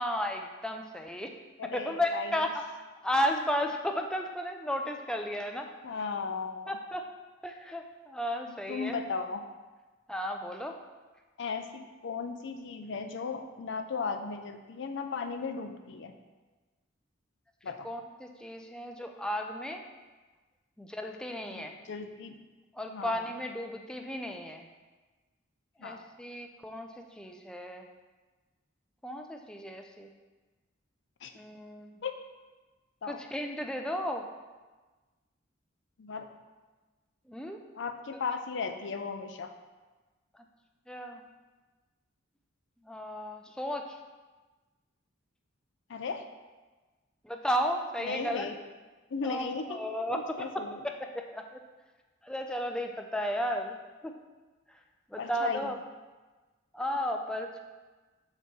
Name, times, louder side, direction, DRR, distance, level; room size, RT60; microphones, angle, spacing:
voice 1, 0.0-1.3 1.7-2.5 3.0-5.7 6.7-7.1 7.4-9.0 10.1-10.8 17.8-19.8 20.8-21.7 22.7-24.6 25.8-27.9 29.0-30.1 31.4-32.0 33.1-34.3 37.3-37.6 40.9-41.2 42.8-43.9 47.2-48.5 49.2-50.5 51.0-51.6 52.2-53.8 54.0-54.2 55.1-55.8 56.7-57.6, equal, 5° left, 3 dB, 0.4 m, -34 dB
voice 2, 1.6-2.4 5.8-6.7 8.5-9.4 11.4-16.1 17.6-17.9 21.5-22.4 22.8-23.2 25.8-26.1 31.2-31.3 32.0-32.1 33.0-33.2 36.0-36.3 37.8-39.5 45.9-46.2 48.0-48.6 49.1-49.8 50.1-50.8 55.2-55.7, left 5 dB, 65° left, 7 dB, 0.5 m, -36 dB
6.4 x 3.0 x 5.3 m, 1.3 s
head